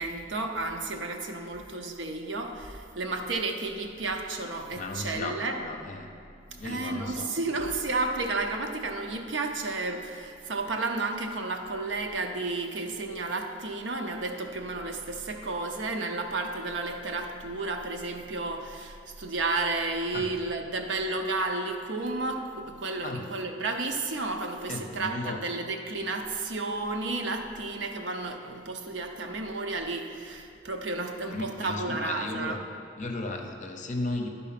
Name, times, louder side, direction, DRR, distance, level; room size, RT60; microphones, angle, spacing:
voice 1, 0.0-5.6 6.6-32.6, right 3 dB, 70° right, 4 dB, 0.7 m, -32 dB
voice 2, 4.7-6.1 6.5-7.6 20.1-20.3 23.0-23.2 24.7-25.4 31.3-32.6 33.0-34.3, left 2 dB, 40° left, 3 dB, 0.7 m, -35 dB
11.0 x 4.0 x 5.8 m, 2.5 s
head